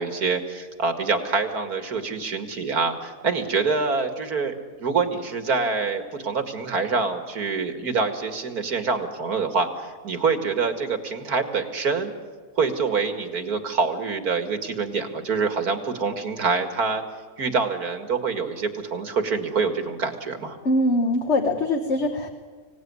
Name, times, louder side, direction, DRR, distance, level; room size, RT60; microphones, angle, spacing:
voice 1, 0.0-12.1 12.6-17.0 17.4-20.6, right 4 dB, 85° right, 6 dB, 2.5 m, -26 dB
voice 2, 20.6-22.3, left 1 dB, 50° left, 4 dB, 1.6 m, -22 dB
25.0 x 17.5 x 9.7 m, 1.5 s
omnidirectional pair, 1.6 m